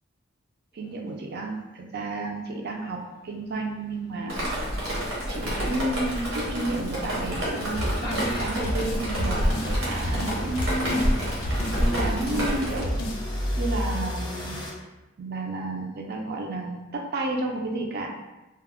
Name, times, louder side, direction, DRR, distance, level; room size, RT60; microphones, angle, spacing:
voice 1, 0.7-4.6 5.3-11.1 11.6-13.0 13.6-14.6 15.2-18.1, right 2 dB, 50° right, 1 dB, 0.4 m, -31 dB
sound 1, 3.0-3.2 3.8-14.7, equal, 25° left, 0.4 m, -31 dB
Drip, 4.3-12.8, equal, 75° right, 0.9 m, -30 dB
sound 2, 7.8-8.3 8.6-9.7 10.0-11.1 11.4-12.5 12.8-13.2, equal, 90° left, 0.4 m, -29 dB
2.2 x 2.0 x 3.5 m, 1.0 s
head